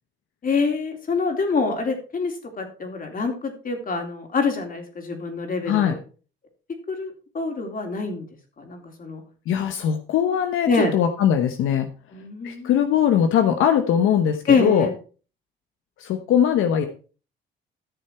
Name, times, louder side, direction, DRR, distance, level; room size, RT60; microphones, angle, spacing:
voice 1, 0.4-6.0 6.9-8.3 8.6-9.2 10.7-10.9 12.1-12.7 14.5-14.9, left 4 dB, 45° left, 4 dB, 3.3 m, -25 dB
voice 2, 5.7-6.0 9.5-11.9 12.4-14.9 16.0-16.9, left 9 dB, 85° left, 6 dB, 1.1 m, -21 dB
13.5 x 6.8 x 4.5 m, 0.37 s
cardioid pair, 90°, 20 cm